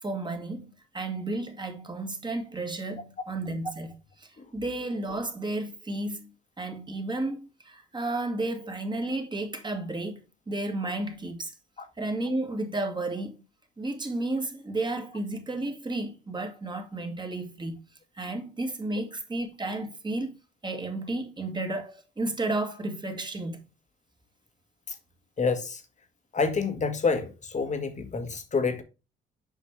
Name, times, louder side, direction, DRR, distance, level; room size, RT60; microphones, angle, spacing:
voice 1, 0.0-6.3 6.6-11.6 12.0-13.4 13.8-17.8 18.2-20.4 20.6-23.6, right 2 dB, 20° right, 1.9 m, -32 dB
voice 2, 25.4-25.8 26.3-28.8, left 4 dB, 35° left, 1.5 m, -28 dB
7.4 x 5.2 x 3.2 m
cardioid pair, 90°, 20 cm